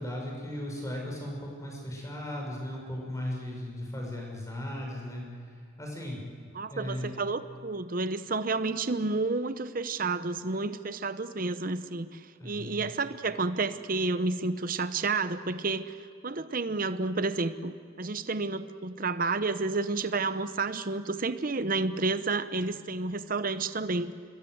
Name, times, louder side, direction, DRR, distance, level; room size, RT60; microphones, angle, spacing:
voice 1, 0.0-5.2 5.5-6.2 6.7-7.1 12.3-12.8, left 1 dB, 15° left, -1 dB, 6.1 m, -37 dB
voice 2, 6.5-15.9 16.2-24.1, right 3 dB, 45° right, 12 dB, 0.9 m, -30 dB
26.5 x 21.5 x 8.0 m, 2.3 s
head